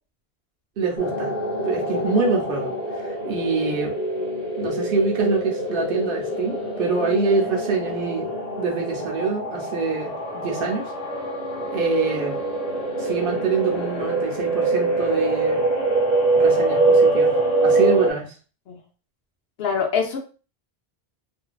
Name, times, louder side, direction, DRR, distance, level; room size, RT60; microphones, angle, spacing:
voice 1, 0.8-1.3 1.6-2.7 3.0-3.9 4.6-8.3 8.6-10.9 11.7-12.3 13.0-15.6 16.4-17.3 17.6-18.3, right 4 dB, 65° right, 0 dB, 0.8 m, -25 dB
sound 1, 1.0-18.1, right 2 dB, 45° left, 0.6 m, -24 dB
voice 2, 19.6-20.2, left 6 dB, 75° left, 2 dB, 0.9 m, -24 dB
2.5 x 2.2 x 2.3 m, 0.36 s
omnidirectional pair, 1.0 m